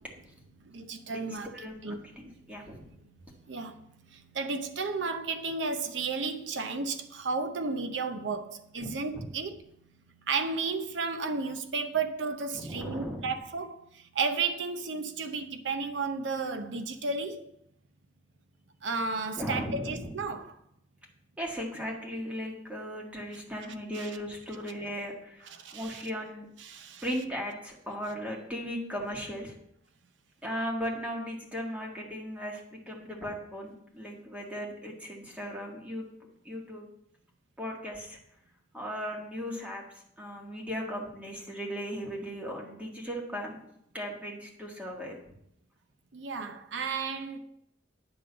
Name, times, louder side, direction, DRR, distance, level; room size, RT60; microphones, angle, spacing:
voice 1, 0.6-1.5 1.8-2.0 2.3-2.5 3.0-9.6 10.2-17.5 18.8-20.6 23.6-24.1 25.6-26.0 26.6-27.0 46.1-47.4, right 4 dB, 75° right, 0.7 m, -33 dB
voice 2, 1.5-2.9 8.8-9.3 12.5-13.3 19.4-20.1 21.4-26.5 27.0-29.5 30.4-36.1 36.4-36.9 37.6-38.2 38.7-39.8 40.2-43.6 43.9-45.2, equal, 10° right, 1.7 m, -37 dB
9.7 x 3.8 x 6.7 m
head